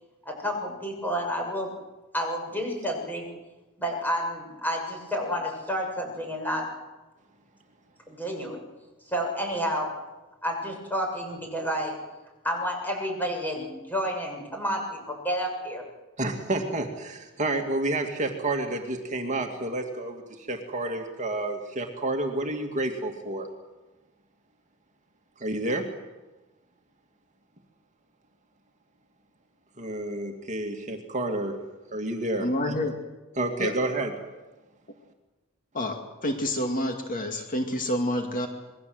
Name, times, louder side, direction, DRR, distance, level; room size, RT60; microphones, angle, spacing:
voice 1, 0.2-1.7 2.1-3.3 3.8-6.7 8.1-8.6 9.1-9.9 10.4-11.9 12.4-15.8, equal, 10° left, 1 dB, 6.6 m, -30 dB
voice 2, 16.2-23.5 25.4-25.8 29.8-31.5 31.9-32.5 33.4-34.1, right 2 dB, 35° right, 3 dB, 2.3 m, -29 dB
voice 3, 32.4-33.0 33.6-33.7 35.7-38.5, left 1 dB, 40° left, 4 dB, 2.2 m, -28 dB
27.0 x 21.5 x 7.9 m, 1.1 s
head